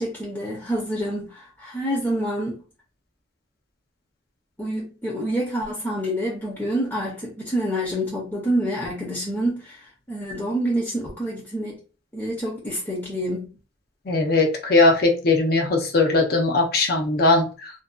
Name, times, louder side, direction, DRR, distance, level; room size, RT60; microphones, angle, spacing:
voice 1, 0.0-2.6 4.6-11.8 12.1-13.5, right 1 dB, 10° left, 0.6 m, -27 dB
voice 2, 14.1-17.7, left 2 dB, 55° left, 0.6 m, -19 dB
2.5 x 2.2 x 2.3 m
head